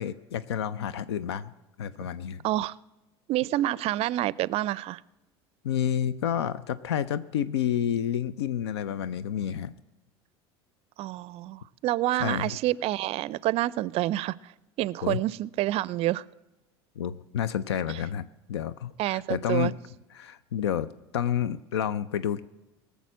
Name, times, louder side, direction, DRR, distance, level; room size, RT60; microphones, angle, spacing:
voice 1, 0.0-1.5 1.8-2.4 5.6-9.7 12.2-12.5 15.0-15.2 17.0-19.7 20.1-22.5, left 9 dB, 85° left, 16 dB, 0.5 m, -29 dB
voice 2, 2.4-2.7 3.3-5.0 11.0-14.5 14.8-16.2 19.0-19.7, right 15 dB, 50° right, 22 dB, 0.4 m, -28 dB
18.0 x 7.0 x 7.4 m, 1.0 s
hypercardioid pair, 85°, 13 cm